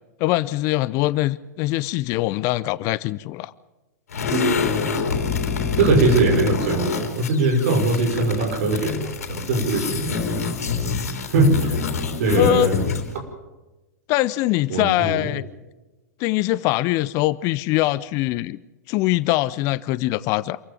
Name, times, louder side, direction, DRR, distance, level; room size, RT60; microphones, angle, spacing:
voice 1, 0.2-3.5 12.4-12.7 14.1-15.4 16.2-18.6 18.9-20.6, left 17 dB, 35° left, 0.6 m, -22 dB
sound 1, 4.1-13.2, left 5 dB, 65° left, 3.5 m, -26 dB
voice 2, 5.8-10.5 11.3-11.8 12.2-12.8 14.7-15.3, right 3 dB, 55° right, 5.8 m, -21 dB
27.0 x 15.0 x 7.4 m
figure-of-eight pair, 100°, 9 cm